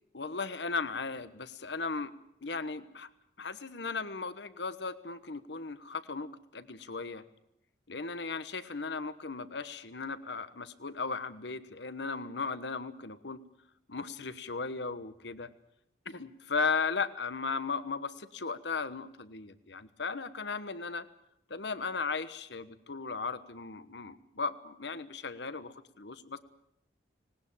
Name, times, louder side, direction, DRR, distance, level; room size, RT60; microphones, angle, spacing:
voice 1, 0.1-2.1 2.4-3.1 3.4-7.2 7.9-13.4 13.9-15.5 16.0-21.1 21.5-26.4, left 4 dB, 75° left, 13 dB, 1.2 m, -36 dB
19.5 x 19.0 x 8.8 m, 0.78 s
head